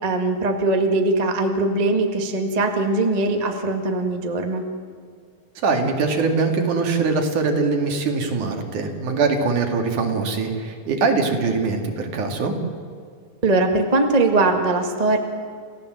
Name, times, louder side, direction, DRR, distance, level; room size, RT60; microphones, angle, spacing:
voice 1, 0.0-4.6 13.4-15.2, right 2 dB, 30° right, 4 dB, 0.7 m, -21 dB
voice 2, 5.6-12.5, right 4 dB, 60° right, 4 dB, 3.7 m, -22 dB
29.0 x 16.0 x 7.8 m, 2.2 s
omnidirectional pair, 4.1 m